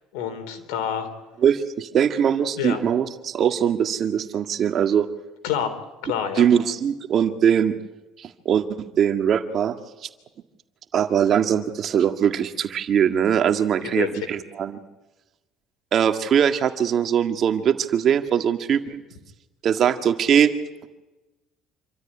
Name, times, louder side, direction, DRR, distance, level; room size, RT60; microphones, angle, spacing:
voice 1, 0.1-1.1 2.6-2.8 5.4-5.7 6.0-6.5 13.8-14.1, left 9 dB, 85° left, 7 dB, 3.6 m, -27 dB
voice 2, 1.4-5.1 6.4-7.8 8.2-8.6 9.0-9.8 10.9-14.8 15.9-19.0 19.6-20.5, right 8 dB, 45° right, 7 dB, 1.8 m, -21 dB
27.0 x 13.5 x 9.9 m, 1.1 s
cardioid pair, 115°, 0 cm